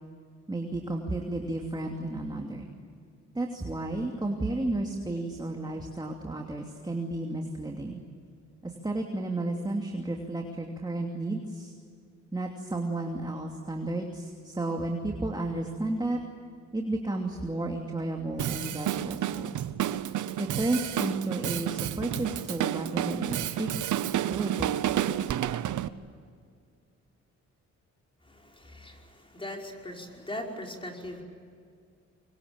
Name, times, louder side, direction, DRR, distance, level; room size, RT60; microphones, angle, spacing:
voice 1, 0.5-2.7 3.3-8.0 8.6-11.7 12.3-16.2 16.7-19.6 20.4-23.7 24.3-24.7, right 2 dB, 15° right, 2 dB, 2.8 m, -32 dB
Drum kit, 18.4-25.9, right 11 dB, 80° right, 1.0 m, -30 dB
voice 2, 28.2-31.2, left 1 dB, 15° left, 1 dB, 5.3 m, -40 dB
25.0 x 24.0 x 8.9 m, 2.2 s
cardioid pair, 95°, 30 cm